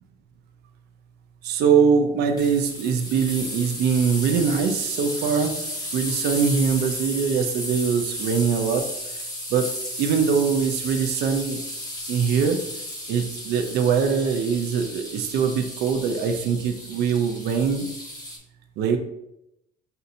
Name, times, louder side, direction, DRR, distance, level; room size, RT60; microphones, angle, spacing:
voice 1, 1.4-5.5 5.9-8.8 9.5-9.6 10.0-11.6 12.1-12.6 13.1-17.9 18.8-19.0, right 6 dB, 75° right, 5 dB, 0.5 m, -22 dB
sound 1, 2.4-18.4, left 1 dB, 20° left, 1.1 m, -34 dB
5.5 x 2.6 x 2.7 m, 0.82 s
cardioid pair, 110°, 17 cm